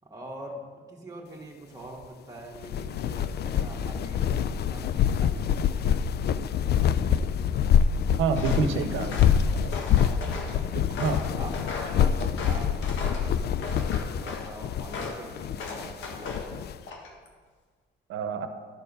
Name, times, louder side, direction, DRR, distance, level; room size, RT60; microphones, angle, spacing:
voice 1, 0.0-0.6 0.9-6.0 11.4-12.2 12.4-13.4 13.8-16.5, right 1 dB, 20° right, -2 dB, 1.6 m, -44 dB
sound 1, 2.6-16.7, left 8 dB, 55° left, 0.4 m, -26 dB
voice 2, 8.2-9.2 9.5-9.8 10.9-11.2 18.1-18.5, right 5 dB, 85° right, 9 dB, 0.8 m, -27 dB
Walk footsteps, 8.3-8.7 9.1-10.6 11.0-13.3 13.6-14.5 14.9-15.2 15.6-16.5 16.8-17.3, left 4 dB, 70° left, 1.5 m, -37 dB
12.5 x 4.5 x 5.4 m, 1.5 s
cardioid pair, 90°, 20 cm